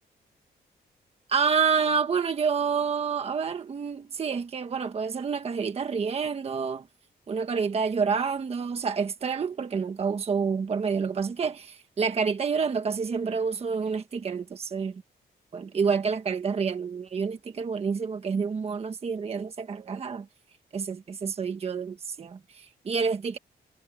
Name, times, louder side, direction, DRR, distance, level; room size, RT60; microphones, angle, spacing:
voice 1, 1.3-6.9 7.3-15.0 15.5-20.3 20.7-23.4, right 5 dB, 35° right, 1.3 m, -28 dB
wide cardioid pair, 150°, 17 cm